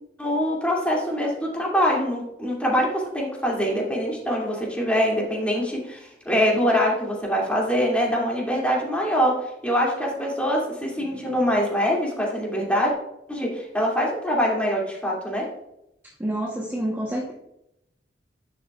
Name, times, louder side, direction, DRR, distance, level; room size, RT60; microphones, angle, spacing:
voice 1, 0.2-12.9 13.3-15.5, equal, 5° left, -3 dB, 2.4 m, -24 dB
voice 2, 16.2-17.3, right 1 dB, 10° right, -3 dB, 1.0 m, -28 dB
10.5 x 7.0 x 2.4 m, 0.82 s
head